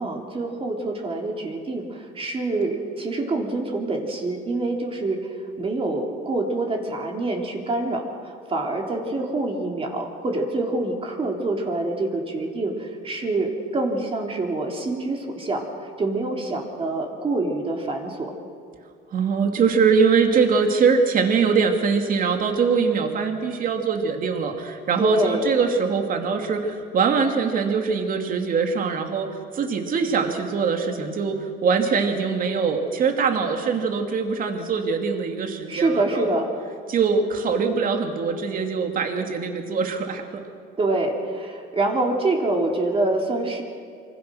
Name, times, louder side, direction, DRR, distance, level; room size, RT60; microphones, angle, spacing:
voice 1, 0.0-5.3 5.6-15.7 16.0-18.3 25.0-25.5 35.7-36.5 40.8-43.6, right 2 dB, 25° right, 1 dB, 3.5 m, -26 dB
voice 2, 19.1-29.3 29.5-31.4 31.6-36.3 36.9-40.2, right 5 dB, 45° right, 4 dB, 2.8 m, -22 dB
26.5 x 25.5 x 6.5 m, 2.3 s
cardioid pair, 130°, 20 cm